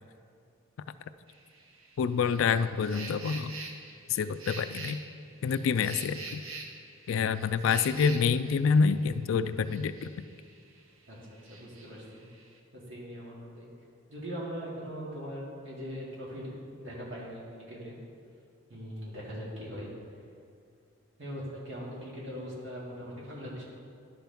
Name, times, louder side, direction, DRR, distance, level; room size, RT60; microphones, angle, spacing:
sound 1, 1.3-10.8 11.0-12.6, right 3 dB, 80° right, 0.9 m, -45 dB
voice 1, 2.0-3.5 4.1-5.0 5.4-6.4 7.1-10.1, left 5 dB, 70° left, 13 dB, 0.3 m, -27 dB
voice 2, 11.1-12.2 12.7-13.7 14.1-18.0 18.7-19.9 21.2-23.6, equal, 60° right, -6 dB, 2.2 m, -41 dB
11.5 x 5.9 x 3.5 m, 2.3 s
head